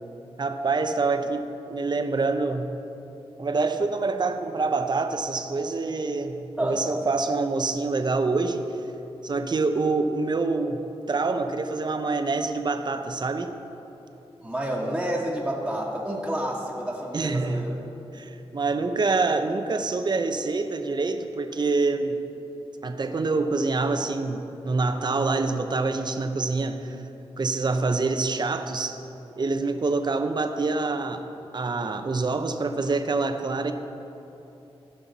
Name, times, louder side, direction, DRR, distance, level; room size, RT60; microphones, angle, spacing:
voice 1, 0.4-1.4 1.7-2.7 3.4-8.7 9.2-13.6 17.1-17.7 18.1-22.2 22.8-27.0 27.4-29.0 29.4-31.2 31.5-33.7, right 3 dB, 45° right, 7 dB, 0.7 m, -26 dB
voice 2, 14.4-17.7, right 1 dB, 5° right, -5 dB, 1.5 m, -29 dB
16.0 x 5.7 x 4.1 m, 3.0 s
cardioid pair, 55°, 10 cm